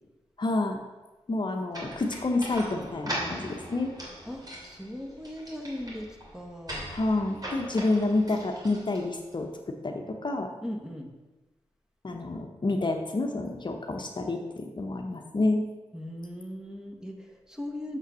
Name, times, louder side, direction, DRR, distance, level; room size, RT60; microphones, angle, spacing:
voice 1, 0.4-0.8 1.3-3.9 6.9-10.5 12.0-15.7, left 2 dB, 45° left, 3 dB, 0.9 m, -29 dB
sound 1, 1.7-9.4, equal, 35° right, 2.8 m, -40 dB
voice 2, 4.3-6.9 10.6-11.1 15.9-18.0, left 1 dB, 5° right, 2 dB, 1.4 m, -39 dB
6.9 x 5.6 x 6.2 m, 1.2 s
cardioid pair, 65°, 11 cm